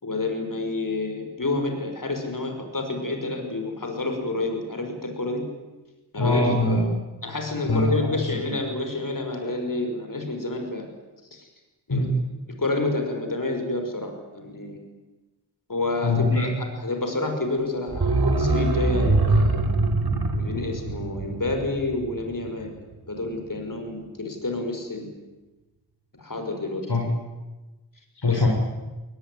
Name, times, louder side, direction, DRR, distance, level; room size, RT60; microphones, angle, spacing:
voice 1, 0.0-5.5 6.1-6.5 7.2-10.9 11.3-11.5 11.9-12.1 12.6-14.8 15.7-19.6 20.3-22.7 23.1-25.1 26.2-26.8 28.3-28.5, left 2 dB, 50° left, 5 dB, 6.0 m, -29 dB
voice 2, 6.2-7.0 7.6-8.1 11.9-12.1 16.0-16.5 26.9-27.0 28.2-28.5, left 2 dB, 70° left, 0 dB, 5.2 m, -22 dB
sound 1, 17.9-22.6 22.9-23.0, right 2 dB, 65° right, 3.1 m, -23 dB
21.5 x 20.0 x 9.6 m, 1.1 s
cardioid pair, 40°, 41 cm